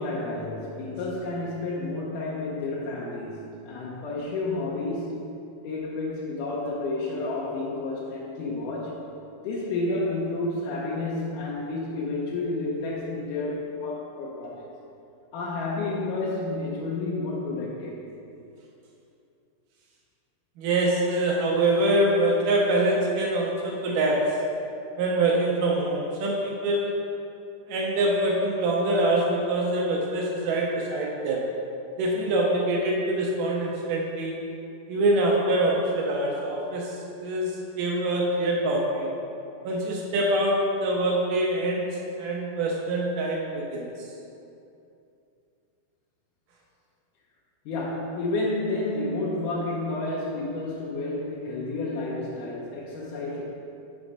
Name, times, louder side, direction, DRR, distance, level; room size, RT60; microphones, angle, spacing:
voice 1, 0.0-5.3 5.6-9.0 9.4-14.7 15.3-18.0 47.7-53.4, left 2 dB, 75° left, -5 dB, 2.2 m, -30 dB
voice 2, 20.6-24.4 25.0-27.0 27.7-31.5 32.0-34.4 34.9-39.1 39.6-41.9 42.2-43.9, right 1 dB, 80° right, -2 dB, 2.2 m, -25 dB
6.1 x 4.3 x 5.2 m, 2.7 s
omnidirectional pair, 3.9 m